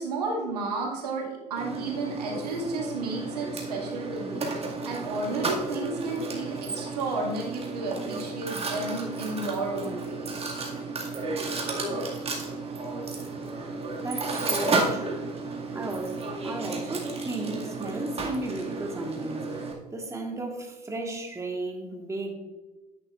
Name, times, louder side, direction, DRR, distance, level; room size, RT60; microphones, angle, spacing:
voice 1, 0.0-10.3, right 3 dB, 85° right, 2.0 m, -32 dB
Mechanisms, 1.6-19.7, right 3 dB, 30° right, 2.0 m, -32 dB
voice 2, 14.0-19.6 19.9-22.3, right 2 dB, 15° right, 1.5 m, -35 dB
10.5 x 9.2 x 2.4 m
hypercardioid pair, 70°, 20 cm